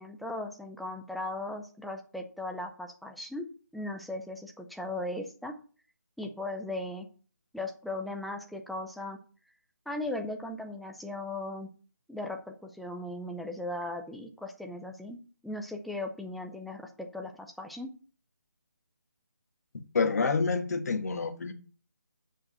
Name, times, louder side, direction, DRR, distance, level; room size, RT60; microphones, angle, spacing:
voice 1, 0.0-3.5 3.7-5.6 6.2-7.1 7.5-9.2 9.9-11.7 12.1-15.2 15.4-17.3 17.6-17.9, left 2 dB, ahead, 0.4 m, -37 dB
voice 2, 19.9-21.5, left 4 dB, 60° left, 1.4 m, -27 dB
8.5 x 5.0 x 6.2 m
figure-of-eight pair, 160°, 10 cm